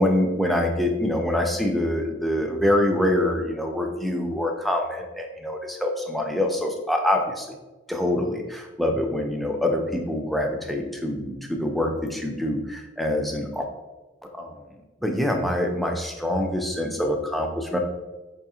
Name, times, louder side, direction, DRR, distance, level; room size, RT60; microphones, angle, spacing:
voice 1, 0.0-7.6 7.9-13.7 14.3-14.6 15.0-17.8, left 1 dB, ahead, 2 dB, 0.3 m, -25 dB
4.6 x 2.9 x 2.3 m, 1.1 s
head